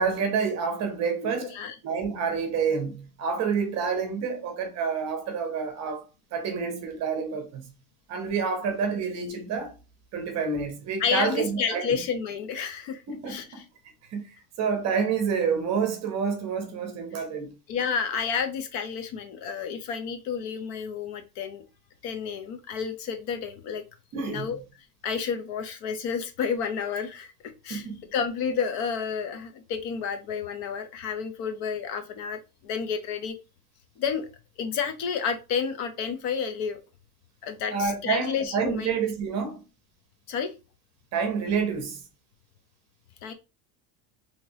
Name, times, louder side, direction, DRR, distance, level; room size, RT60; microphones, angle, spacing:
voice 1, 0.0-1.5 1.8-7.7 8.1-9.7 10.1-12.0 13.1-13.6 14.1-17.5 24.1-24.6 27.7-28.0 37.7-39.6 41.1-42.0, right 5 dB, 35° right, 0.7 m, -28 dB
voice 2, 1.2-1.7 11.0-13.0 13.3-13.6 17.7-21.6 22.0-23.8 24.3-24.6 25.0-27.3 27.6-33.4 34.0-34.3 34.6-36.8 37.4-38.9 40.3-40.5 43.2-43.3, left 6 dB, 55° left, 0.6 m, -30 dB
3.2 x 2.9 x 2.7 m
cardioid pair, 165°, 47 cm